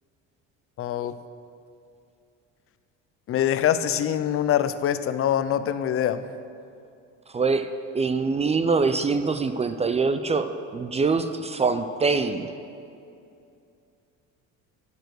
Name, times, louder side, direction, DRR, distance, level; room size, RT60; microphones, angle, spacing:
voice 1, 0.8-1.2 3.3-6.3, left 10 dB, 45° left, 13 dB, 0.5 m, -24 dB
voice 2, 7.3-7.7 7.9-12.5, right 4 dB, 20° right, 10 dB, 0.4 m, -24 dB
10.0 x 6.7 x 6.4 m, 2.5 s
cardioid pair, 105°, 31 cm